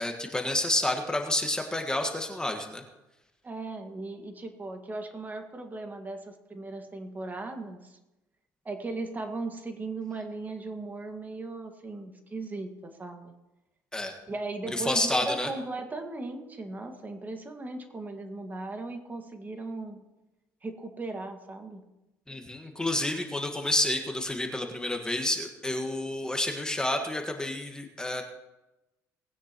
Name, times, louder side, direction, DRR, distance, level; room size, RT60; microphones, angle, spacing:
voice 1, 0.0-2.8 13.9-14.1 14.7-15.5 22.3-28.2, left 1 dB, 10° left, 3 dB, 1.5 m, -29 dB
voice 2, 3.4-8.0 8.6-13.3 14.3-20.0 20.6-21.8, right 3 dB, 25° right, 5 dB, 1.7 m, -37 dB
19.5 x 9.5 x 3.0 m, 0.98 s
cardioid pair, 95°, 7 cm